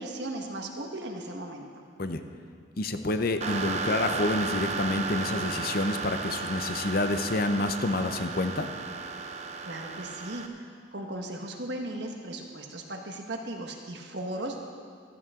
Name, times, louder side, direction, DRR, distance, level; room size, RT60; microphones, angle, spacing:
voice 1, 0.0-1.7 9.2-9.3 9.6-10.5 10.9-14.8, right 1 dB, 60° right, 2 dB, 1.4 m, -37 dB
voice 2, 2.8-8.7, left 2 dB, 50° left, 8 dB, 0.7 m, -28 dB
sound 1, 3.4-10.5, right 4 dB, 35° right, 0.7 m, -34 dB
14.5 x 14.0 x 3.7 m, 2.2 s
head